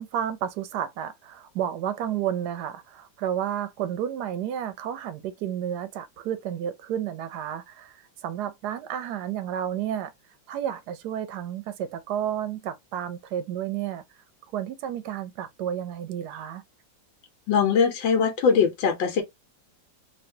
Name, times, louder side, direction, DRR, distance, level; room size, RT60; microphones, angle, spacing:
voice 1, 0.0-7.9 8.2-10.1 10.5-14.0 14.5-16.6, right 10 dB, 70° right, 1.0 m, -31 dB
voice 2, 17.5-19.2, left 6 dB, 85° left, 1.4 m, -21 dB
3.1 x 2.7 x 2.7 m
omnidirectional pair, 2.0 m